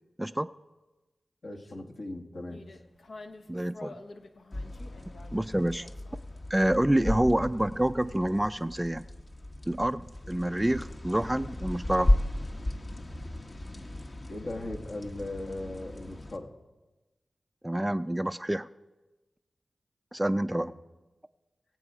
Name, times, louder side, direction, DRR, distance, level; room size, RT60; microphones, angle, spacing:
voice 1, 1.4-2.6 14.2-16.5 20.4-20.7, left 2 dB, 65° left, 2 dB, 1.7 m, -38 dB
sound 1, 2.5-8.6, left 3 dB, 80° left, 0.9 m, -50 dB
voice 2, 3.5-4.0 5.3-5.9 6.5-9.1 9.7-12.1 17.6-18.7 20.1-20.7, right 1 dB, 15° right, 14 dB, 0.4 m, -27 dB
sound 2, 4.5-16.4, left 1 dB, 45° left, 1.2 m, -34 dB
22.5 x 7.5 x 4.9 m, 1.1 s
cardioid pair, 45°, 0 cm